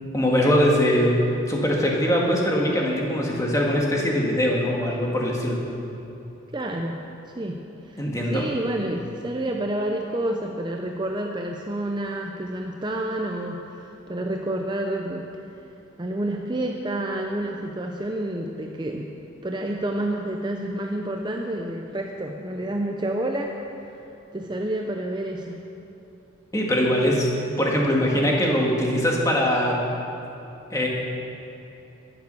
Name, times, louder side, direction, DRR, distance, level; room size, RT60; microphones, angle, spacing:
voice 1, 0.1-1.2 1.5-5.6 8.0-8.5 26.5-27.3 27.6-29.8 30.7-30.9, equal, 15° left, -2 dB, 1.7 m, -22 dB
voice 2, 6.5-7.0 7.3-15.3 15.5-15.6 16.0-19.1 19.4-23.5 23.8-25.6, right 1 dB, 20° right, 2 dB, 0.6 m, -29 dB
13.0 x 9.5 x 6.8 m, 2.9 s
head